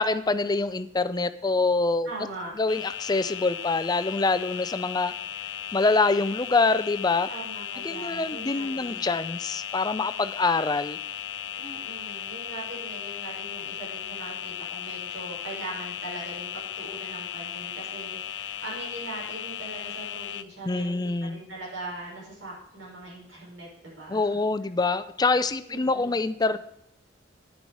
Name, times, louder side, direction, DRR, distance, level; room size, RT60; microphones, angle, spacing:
voice 1, 0.0-2.1 2.6-5.1 5.7-7.3 7.8-11.0 20.6-21.4 24.1-26.6, left 3 dB, 20° left, 13 dB, 0.5 m, -25 dB
voice 2, 2.0-2.5 7.3-9.1 11.5-24.3 25.7-26.2, right 2 dB, 80° right, -4 dB, 5.7 m, -41 dB
sound 1, 2.7-20.4, left 10 dB, 75° left, 0.5 m, -36 dB
10.0 x 9.4 x 4.8 m, 0.71 s
head